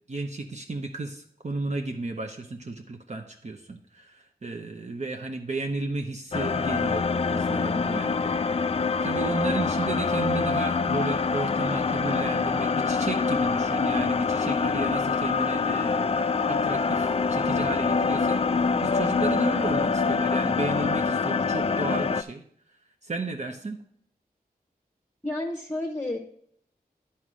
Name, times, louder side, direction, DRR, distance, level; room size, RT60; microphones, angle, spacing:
voice 1, 0.1-22.4 23.0-23.8, right 3 dB, 45° right, 3 dB, 0.7 m, -33 dB
sound 1, 6.3-22.2, left 4 dB, 40° left, 0.3 m, -25 dB
voice 2, 25.2-26.2, left 1 dB, 15° left, 2 dB, 1.0 m, -30 dB
9.5 x 4.3 x 6.2 m, 0.67 s
wide cardioid pair, 65°, 16 cm